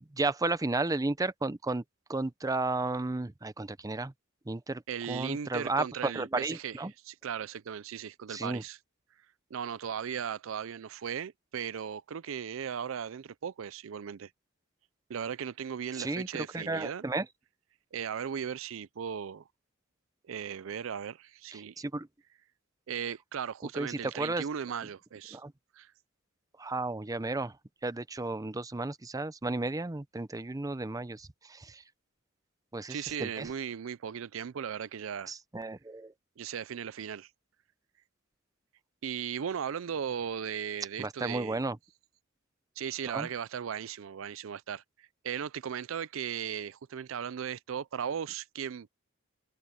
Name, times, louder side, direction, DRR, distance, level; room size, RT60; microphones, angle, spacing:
voice 1, 0.1-1.8 2.1-4.1 4.5-4.8 5.1-6.9 8.3-8.6 15.9-17.3 21.5-22.1 23.7-24.5 25.3-25.5 26.6-27.6 27.8-31.8 32.7-33.5 35.3-36.1 41.0-41.8 43.1-43.3, right 2 dB, 15° right, 0.6 m, -33 dB
voice 2, 4.9-6.8 7.0-8.8 9.5-14.3 15.1-17.0 17.9-19.4 20.2-21.8 22.9-25.4 25.7-25.9 32.9-35.3 36.4-37.3 39.0-41.6 42.8-48.9, right 8 dB, 70° right, 0.4 m, -37 dB
head